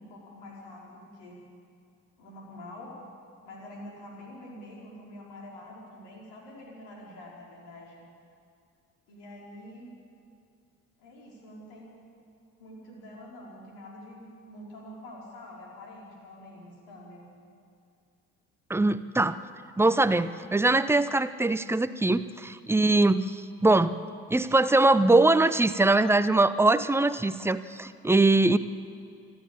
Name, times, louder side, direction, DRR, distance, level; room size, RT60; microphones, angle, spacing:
voice 1, 0.0-1.4 2.2-2.9 3.4-8.0 9.1-9.9 11.0-11.9 12.6-17.3, left 1 dB, 65° left, -3 dB, 4.7 m, -46 dB
voice 2, 18.7-19.4 19.8-23.9 24.3-28.6, right 2 dB, 5° right, 13 dB, 0.8 m, -22 dB
26.0 x 12.0 x 8.9 m, 2.4 s
figure-of-eight pair, 45°, 41 cm